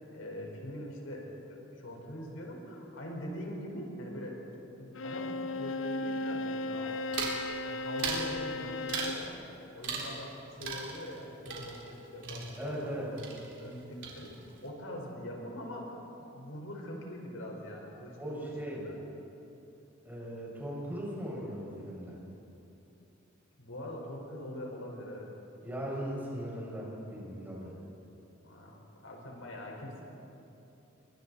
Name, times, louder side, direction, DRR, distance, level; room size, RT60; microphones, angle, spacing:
voice 1, 0.1-4.4 4.8-7.1 7.5-9.4 9.7-13.3 13.6-19.0 23.6-25.3 28.4-30.0, left 1 dB, 90° left, -1 dB, 5.1 m, -43 dB
Bowed string instrument, 4.9-9.3, left 2 dB, 70° left, 0.7 m, -35 dB
sound 1, 7.1-7.4 8.0-8.3 8.9-9.3 9.8-10.3 10.6-12.9 13.2-13.8 14.0-14.6, right 4 dB, 65° right, 3.8 m, -38 dB
voice 2, 12.6-13.1 18.2-18.8 20.0-22.2 25.6-27.7, right 1 dB, 10° right, -5 dB, 6.5 m, -38 dB
28.5 x 24.0 x 4.3 m, 2.8 s
head